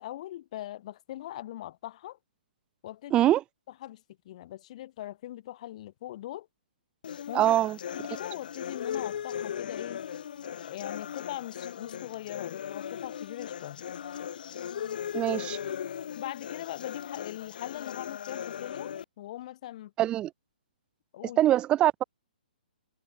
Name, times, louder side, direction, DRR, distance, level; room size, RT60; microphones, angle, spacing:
voice 1, 0.0-2.2 2.8-3.3 3.8-6.5 7.3-7.5 7.9-10.0 10.6-13.8 16.2-19.9 21.1-21.4, left 14 dB, 45° left, 7.2 m, -41 dB
voice 2, 3.1-3.4 7.3-7.8 15.1-15.6 20.0-20.3 21.4-22.0, right 13 dB, 20° right, 1.9 m, -23 dB
sound 1, 7.0-19.0, left 8 dB, 60° left, 1.4 m, -38 dB
hypercardioid pair, 150°, 5 cm